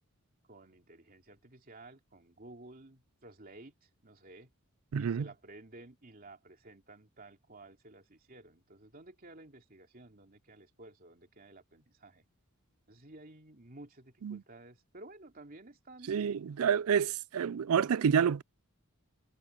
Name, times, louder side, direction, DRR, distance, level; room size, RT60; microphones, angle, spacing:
voice 1, 0.5-4.5 5.0-12.2 12.9-16.1, right 2 dB, 40° right, 2.8 m, -53 dB
voice 2, 4.9-5.2 14.2-14.4 16.1-18.4, right 7 dB, 75° right, 0.4 m, -28 dB
head